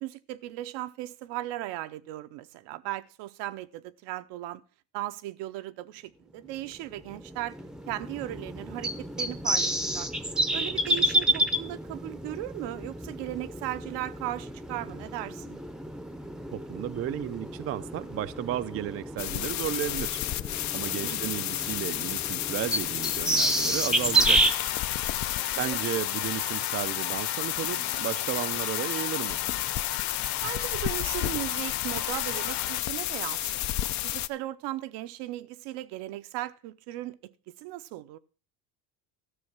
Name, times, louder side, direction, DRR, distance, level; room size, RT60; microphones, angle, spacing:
voice 1, 0.0-4.6 4.9-7.6 7.9-10.1 10.5-15.6 21.0-21.4 25.5-25.8 30.4-33.7 34.0-37.3 37.6-38.2, right 15 dB, 70° right, 0.9 m, -37 dB
sound 1, 6.7-24.5, right 1 dB, ahead, 0.7 m, -30 dB
voice 2, 16.5-24.7 25.2-29.4, right 12 dB, 35° right, 0.5 m, -34 dB
sound 2, 19.2-34.3, left 13 dB, 40° left, 0.5 m, -31 dB
sound 3, 24.1-32.8, left 12 dB, 60° left, 1.6 m, -37 dB
13.0 x 6.4 x 5.9 m
supercardioid pair, 120°, 44 cm